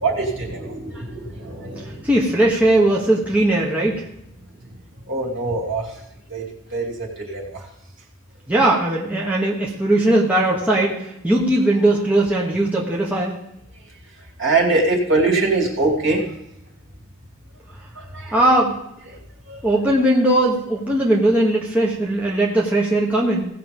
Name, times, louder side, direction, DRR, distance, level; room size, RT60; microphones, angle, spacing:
voice 1, 0.0-1.8 5.1-5.8 6.3-6.4 6.7-6.9 7.3-7.4 14.4-16.2 18.2-18.3 19.5-19.6, right 3 dB, 55° right, -2 dB, 2.9 m, -22 dB
voice 2, 2.0-4.0 8.5-13.3 18.3-18.8 19.6-23.5, right 1 dB, 5° right, -4 dB, 1.2 m, -19 dB
17.0 x 5.9 x 5.3 m, 0.81 s
head